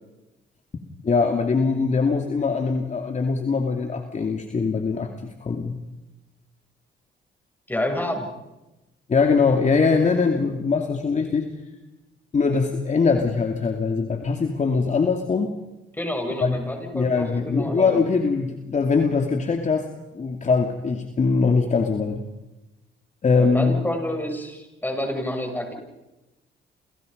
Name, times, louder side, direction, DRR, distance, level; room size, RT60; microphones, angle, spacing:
voice 1, 1.0-5.8 9.1-11.5 12.3-15.5 16.4-16.6 16.9-19.9 20.1-22.2 23.2-23.8, left 4 dB, 35° left, 4 dB, 2.6 m, -22 dB
voice 2, 7.7-8.3 16.0-18.0 23.4-25.7, left 1 dB, 10° left, 3 dB, 7.3 m, -28 dB
29.5 x 28.0 x 5.4 m, 1.0 s
cardioid pair, 90°, 20 cm